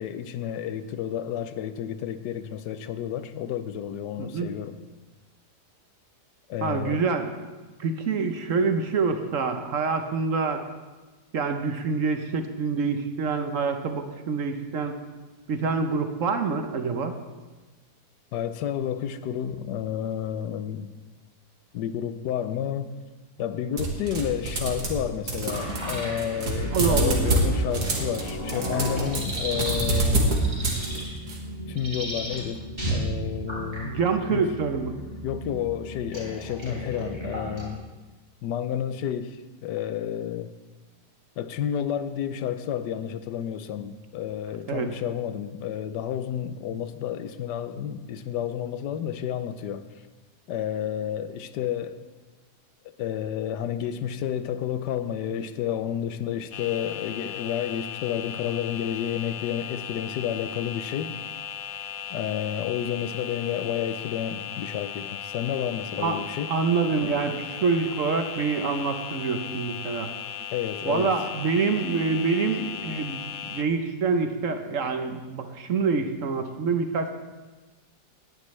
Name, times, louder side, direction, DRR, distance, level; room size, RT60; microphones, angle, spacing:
voice 1, 0.0-4.8 6.5-7.0 18.3-20.9 21.7-22.9 23.4-30.3 31.7-34.0 34.3-34.5 34.9-37.8 38.4-40.5 41.4-49.8 50.5-52.0 53.0-61.2 62.1-66.6 70.5-71.1, left 9 dB, 90° left, 12 dB, 1.3 m, -30 dB
voice 2, 4.2-4.5 6.6-7.3 7.8-10.6 11.3-15.0 15.5-17.1 26.7-27.3 33.8-34.9 44.7-44.9 66.0-66.2 66.5-70.1 70.9-73.2 73.5-77.1, right 4 dB, 55° right, 7 dB, 1.1 m, -26 dB
sound 1, 23.8-25.0 25.3-31.4, right 2 dB, 75° right, 2.3 m, -26 dB
sound 2, 25.5-37.7, equal, 30° right, 4.1 m, -34 dB
sound 3, 56.5-73.6, left 9 dB, 65° left, 1.0 m, -37 dB
18.0 x 10.5 x 3.2 m, 1.2 s
omnidirectional pair, 1.8 m